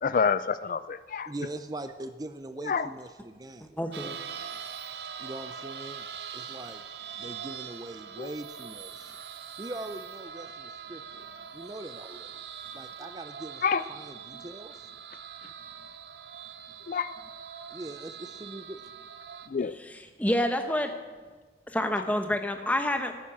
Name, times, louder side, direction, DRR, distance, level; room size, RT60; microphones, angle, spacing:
voice 1, 0.0-1.3 2.7-2.9 8.2-8.3 13.6-13.8 16.9-17.1 19.5-19.7, left 5 dB, 50° left, 14 dB, 0.3 m, -27 dB
voice 2, 1.2-3.8 5.2-6.1 6.3-6.8 7.2-9.1 9.6-11.3 11.5-12.3 12.7-13.6 13.9-14.9 17.7-18.9, right 2 dB, 20° right, 10 dB, 0.5 m, -41 dB
voice 3, 3.6-4.2 19.7-20.9 21.7-23.1, left 1 dB, 10° left, 6 dB, 1.0 m, -28 dB
sound 1, 3.9-19.5, right 7 dB, 75° right, 0.8 m, -42 dB
13.0 x 10.0 x 7.3 m, 1.4 s
head